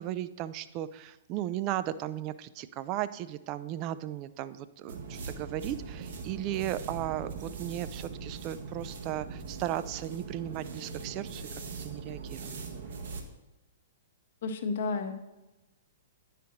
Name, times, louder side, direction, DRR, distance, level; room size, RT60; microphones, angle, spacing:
voice 1, 0.0-11.5 11.8-12.5, right 12 dB, 35° right, 14 dB, 0.3 m, -36 dB
sound 1, 4.9-13.3, right 5 dB, 60° right, 0.9 m, -41 dB
voice 2, 14.4-15.1, left 4 dB, 55° left, 7 dB, 0.8 m, -31 dB
10.0 x 4.9 x 3.0 m, 1.0 s
figure-of-eight pair, 110°, 0 cm